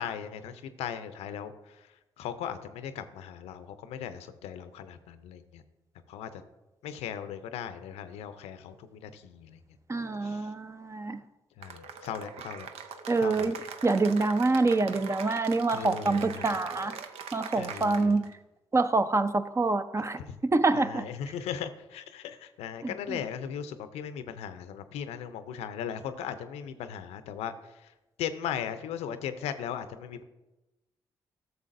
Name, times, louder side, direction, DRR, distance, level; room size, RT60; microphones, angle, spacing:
voice 1, 0.0-1.9 2.2-5.6 6.1-6.4 6.8-9.6 10.2-10.5 11.6-12.7 13.2-13.5 15.7-16.6 17.6-18.2 20.2-20.4 20.7-27.5 27.8-27.9 28.2-30.2, left 8 dB, 80° left, 11 dB, 0.5 m, -38 dB
voice 2, 9.9-11.2 13.1-13.6 13.8-17.0 17.3-18.3 18.7-21.0 22.8-23.2, right 3 dB, 25° right, 11 dB, 0.6 m, -26 dB
Cheering / Applause, 11.6-18.3, right 6 dB, 75° right, 0.6 m, -42 dB
12.0 x 6.8 x 2.6 m, 1.0 s
hypercardioid pair, 45°, 11 cm